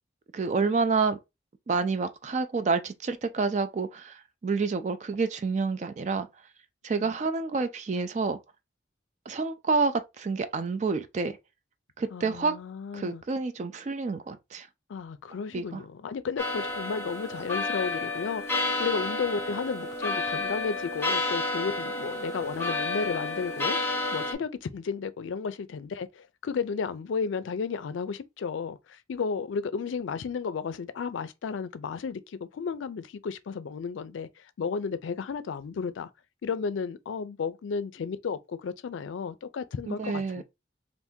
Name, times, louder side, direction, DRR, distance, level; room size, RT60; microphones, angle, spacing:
voice 1, 0.3-1.2 1.7-6.3 6.8-8.4 9.3-11.4 12.0-12.6 12.9-14.7 15.5-15.8 39.9-40.4, right 4 dB, 40° right, 0.3 m, -28 dB
voice 2, 12.1-13.2 14.9-36.1 36.4-40.4, left 5 dB, 90° left, 0.4 m, -33 dB
sound 1, 16.4-24.3, left 2 dB, 15° left, 0.6 m, -30 dB
2.7 x 2.5 x 3.5 m
head